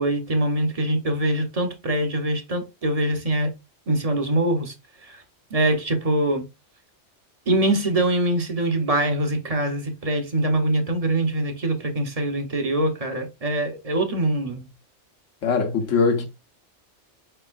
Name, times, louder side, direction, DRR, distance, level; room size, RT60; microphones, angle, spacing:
voice 1, 0.0-3.5 3.9-4.7 5.0-5.2 5.5-6.5 7.5-14.7, right 1 dB, 35° right, 0.9 m, -23 dB
voice 2, 15.4-16.3, left 5 dB, 85° left, 1.4 m, -21 dB
4.7 x 4.5 x 2.4 m
omnidirectional pair, 1.2 m